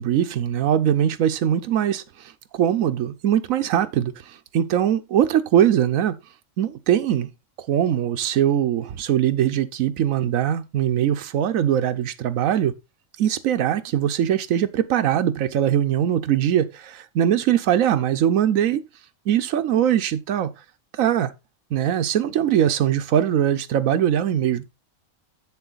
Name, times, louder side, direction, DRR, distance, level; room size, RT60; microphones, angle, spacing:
voice 1, 0.0-6.2 6.6-7.3 7.6-12.7 13.2-18.8 19.3-20.5 20.9-21.3 21.7-24.7, right 10 dB, 80° right, 1.2 m, -21 dB
7.7 x 7.1 x 4.0 m
omnidirectional pair, 1.4 m